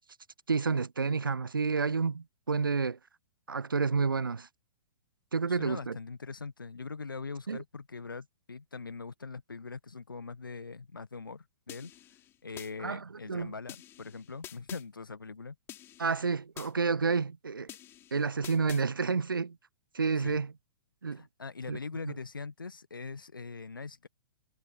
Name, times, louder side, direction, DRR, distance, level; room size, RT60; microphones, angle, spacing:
voice 1, 0.5-3.0 3.5-4.5 5.3-6.0 7.5-7.6 12.8-13.0 13.3-13.5 16.0-17.7 18.1-19.6 19.9-20.5 21.0-21.2 21.7-21.8 22.1-22.2, right 5 dB, 75° right, 0.5 m, -29 dB
voice 2, 5.5-11.9 12.4-15.5 20.1-20.4 21.1-24.1, left 4 dB, 75° left, 1.1 m, -42 dB
sound 1, 11.7-12.7 13.7-14.8 15.7-16.7 17.7-18.8, left 12 dB, 20° left, 3.1 m, -48 dB
figure-of-eight pair, 115°, 11 cm